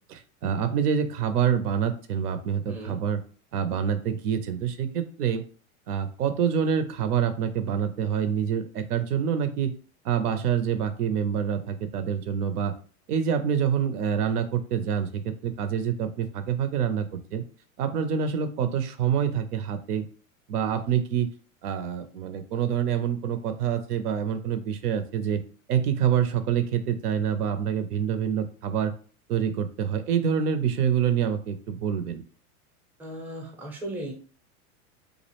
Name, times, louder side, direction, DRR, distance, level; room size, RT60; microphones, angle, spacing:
voice 1, 0.1-3.2 3.5-5.4 5.9-9.7 10.0-12.7 13.1-17.4 17.8-20.0 20.5-21.3 21.6-25.4 25.7-28.9 29.3-32.2, right 8 dB, 85° right, 9 dB, 0.6 m, -26 dB
voice 2, 2.7-3.0 33.0-34.1, right 1 dB, 5° right, 2 dB, 0.4 m, -36 dB
2.4 x 2.0 x 2.9 m, 0.40 s
hypercardioid pair, 105°, 45 cm